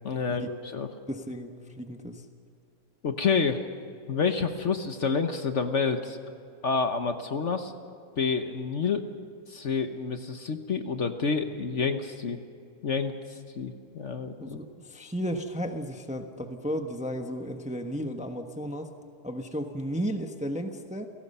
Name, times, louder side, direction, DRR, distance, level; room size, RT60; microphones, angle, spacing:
voice 1, 0.0-0.9 3.0-3.7 4.1-6.2 6.6-7.7 8.2-9.1 9.5-12.4 12.8-14.6, left 5 dB, 50° left, 7 dB, 1.2 m, -28 dB
voice 2, 1.1-2.2 14.4-18.9 19.2-21.1, equal, 5° right, 5 dB, 1.0 m, -34 dB
29.0 x 17.5 x 5.5 m, 2.5 s
omnidirectional pair, 1.7 m